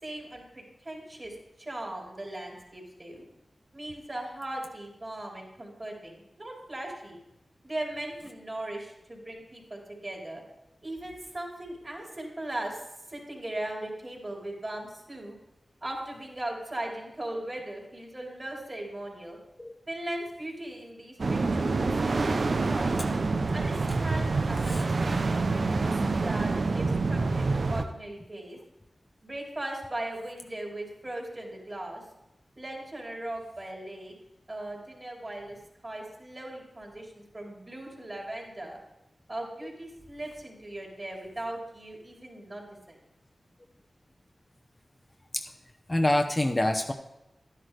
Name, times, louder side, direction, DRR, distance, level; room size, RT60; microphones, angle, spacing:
voice 1, 0.0-3.2 3.7-7.2 7.6-10.4 10.8-12.8 13.1-15.4 15.8-19.4 19.9-22.4 22.7-23.0 23.5-28.6 29.2-32.0 32.6-34.1 34.5-35.6 35.8-38.8 39.3-43.0, right 1 dB, 40° right, -1 dB, 3.5 m, -38 dB
sound 1, 21.2-27.8, right 3 dB, 65° right, 0.6 m, -27 dB
voice 2, 45.9-46.9, left 1 dB, 25° left, 5 dB, 0.7 m, -25 dB
11.0 x 10.5 x 3.3 m, 0.90 s
cardioid pair, 45°, 0 cm